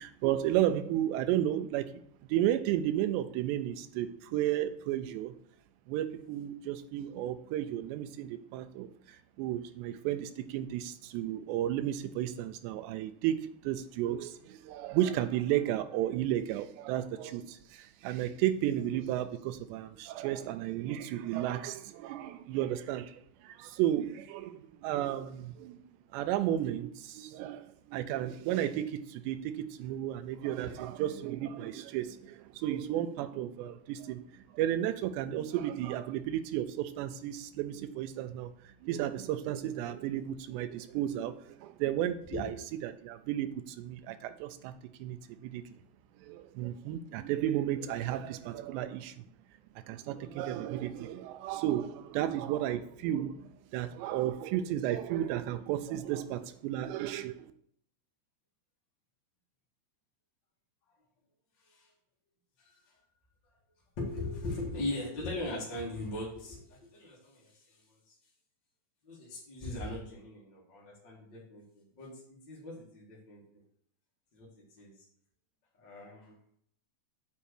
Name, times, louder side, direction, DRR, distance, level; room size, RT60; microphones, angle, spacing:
voice 1, 0.2-2.0 2.3-5.3 5.9-25.8 26.1-42.6 42.8-44.7 45.0-45.6 46.2-49.2 49.9-57.5, right 12 dB, 85° right, 10 dB, 2.8 m, -33 dB
voice 2, 64.0-67.8 69.0-73.6 74.3-74.9 75.8-76.3, left 2 dB, 40° left, -5 dB, 1.6 m, -40 dB
8.4 x 4.4 x 6.5 m, 0.65 s
omnidirectional pair, 5.0 m